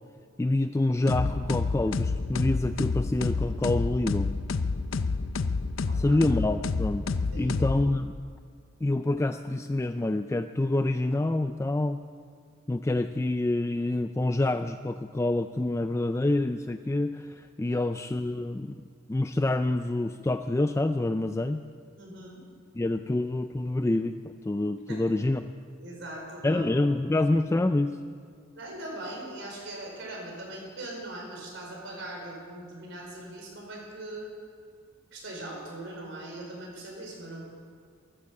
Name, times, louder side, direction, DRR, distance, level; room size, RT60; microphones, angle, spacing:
voice 1, 0.4-4.3 6.0-7.1 7.4-8.1 8.8-12.0 12.7-18.8 19.1-21.6 22.8-25.5 26.4-28.0, left 2 dB, 15° left, 9 dB, 0.3 m, -27 dB
sound 1, 1.1-8.2, left 4 dB, 70° left, 0.6 m, -29 dB
voice 2, 5.9-6.3 7.3-7.6 17.6-17.9 21.9-22.4 24.9-25.0 25.8-26.7 28.5-34.3 35.1-37.4, right 1 dB, 60° right, -1 dB, 4.7 m, -40 dB
13.5 x 13.5 x 7.7 m, 2.2 s
head